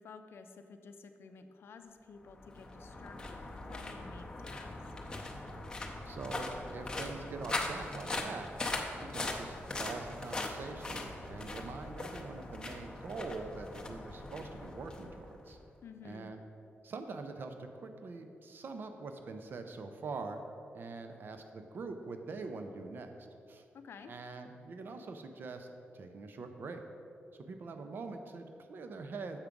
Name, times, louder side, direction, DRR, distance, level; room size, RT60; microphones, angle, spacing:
voice 1, 0.0-3.4 3.7-4.8 15.8-16.3 23.7-24.1, left 5 dB, 65° left, 8 dB, 0.5 m, -52 dB
sound 1, 2.2-15.6, left 2 dB, 20° left, 0.6 m, -41 dB
voice 2, 6.1-8.5 9.0-15.6 16.0-16.4 16.8-20.4 20.7-23.1 23.5-23.6 24.1-25.7 25.9-26.8 27.4-29.4, right 4 dB, 50° right, 6 dB, 0.5 m, -44 dB
7.2 x 4.7 x 5.2 m, 2.6 s
wide cardioid pair, 170°, 4 cm